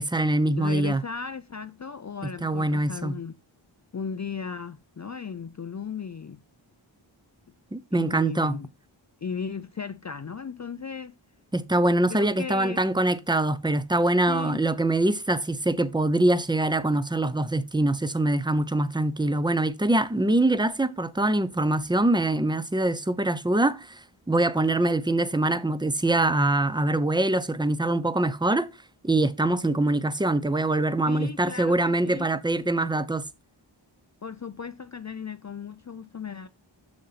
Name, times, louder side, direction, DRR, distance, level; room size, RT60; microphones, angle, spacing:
voice 1, 0.0-1.0 2.4-3.2 7.7-8.6 11.5-28.7 29.0-33.2, right 2 dB, 10° right, 0.6 m, -24 dB
voice 2, 0.6-3.3 3.9-6.4 7.9-8.7 9.2-11.2 12.1-12.8 14.3-14.6 31.1-32.3 34.2-36.5, left 6 dB, 35° left, 0.5 m, -36 dB
7.0 x 6.5 x 4.1 m
wide cardioid pair, 65°, 48 cm